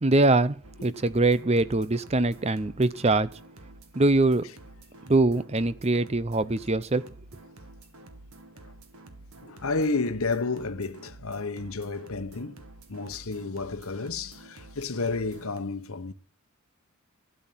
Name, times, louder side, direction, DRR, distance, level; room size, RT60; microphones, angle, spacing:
voice 1, 0.0-3.3 3.9-4.5 5.1-7.0, right 2 dB, 30° right, 0.6 m, -23 dB
sound 1, 0.6-15.6, right 2 dB, 75° right, 1.8 m, -49 dB
voice 2, 9.4-12.6 12.9-16.1, left 3 dB, 70° left, 1.0 m, -31 dB
12.5 x 9.2 x 5.8 m
head